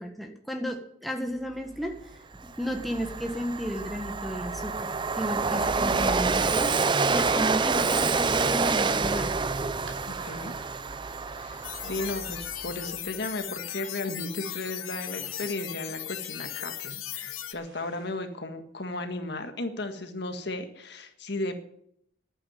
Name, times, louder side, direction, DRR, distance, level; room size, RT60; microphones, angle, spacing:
voice 1, 0.0-1.9 2.6-9.3, equal, ahead, 2 dB, 1.4 m, -33 dB
Train, 1.9-2.0 2.4-12.8, right 4 dB, 25° right, 0.5 m, -27 dB
voice 2, 5.6-6.1 10.1-10.5 11.3-21.6, left 2 dB, 55° left, 7 dB, 1.6 m, -35 dB
sound 1, 9.7-10.0 11.0-11.1 12.3-12.4 14.0-18.3, right 3 dB, 80° right, 3.6 m, -55 dB
sound 2, 11.6-17.5, left 11 dB, 85° left, 1.3 m, -37 dB
11.5 x 8.8 x 9.2 m, 0.71 s
head